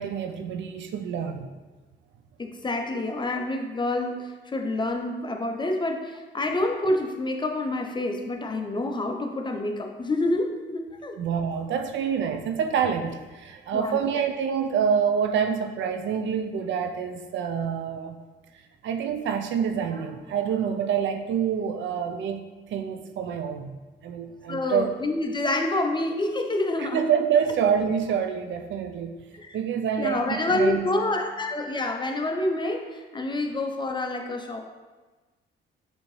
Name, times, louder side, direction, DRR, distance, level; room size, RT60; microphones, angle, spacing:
voice 1, 0.0-1.5 11.2-18.2 18.8-22.4 22.7-24.9 26.8-29.1 29.5-30.9, right 7 dB, 70° right, 5 dB, 0.5 m, -27 dB
voice 2, 2.4-11.1 13.7-14.0 24.5-27.0 29.3-29.6 30.0-34.7, left 2 dB, 25° left, 4 dB, 0.5 m, -27 dB
6.3 x 2.7 x 3.1 m, 1.2 s
cardioid pair, 90°, 20 cm